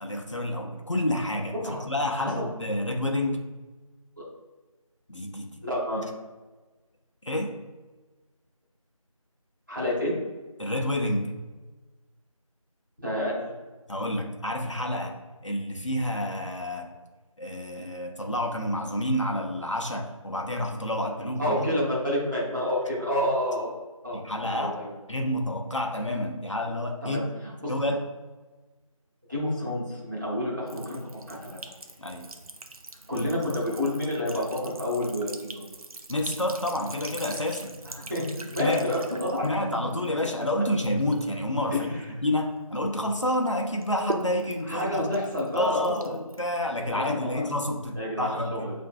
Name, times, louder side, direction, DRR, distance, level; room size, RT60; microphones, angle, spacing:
voice 1, 0.0-1.5 1.9-3.4 5.1-5.6 7.2-7.5 10.6-11.3 13.9-16.9 17.4-21.8 24.1-24.8 25.1-27.2 27.7-28.0 32.0-32.3 33.1-33.3 36.1-37.7 38.6-38.9 39.4-45.1 45.6-48.7, left 1 dB, 60° left, 1 dB, 0.6 m, -29 dB
voice 2, 2.2-2.5 4.2-4.3 5.6-6.1 9.7-10.1 13.0-13.5 21.4-23.7 24.0-24.2 24.5-24.9 27.0-27.7 29.3-31.6 33.1-35.3 37.8-39.5 41.7-42.0 44.6-46.2 46.9-47.0 47.3-47.5 48.0-48.7, left 1 dB, 35° right, -7 dB, 1.1 m, -29 dB
Sink (filling or washing) / Trickle dribble, 30.7-42.8 43.2-47.0, right 2 dB, 85° right, 0.5 m, -43 dB
5.5 x 2.5 x 2.2 m, 1.2 s
figure-of-eight pair, 175°, 18 cm